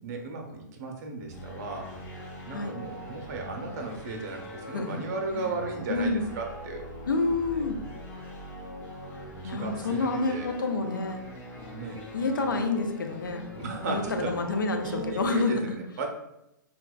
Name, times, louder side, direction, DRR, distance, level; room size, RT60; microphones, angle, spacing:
voice 1, 0.0-1.9 2.4-6.9 7.5-7.7 9.2-10.5 11.7-12.1 13.6-14.6 14.8-16.1, right 3 dB, 50° right, 2 dB, 0.7 m, -35 dB
sound 1, 1.3-15.3, left 1 dB, 15° left, 0.7 m, -42 dB
voice 2, 5.9-6.3 7.1-7.8 9.4-11.2 12.1-13.4 13.9-15.8, left 3 dB, 75° left, 4 dB, 0.5 m, -28 dB
3.9 x 2.3 x 2.2 m, 0.87 s
figure-of-eight pair, 110°, 11 cm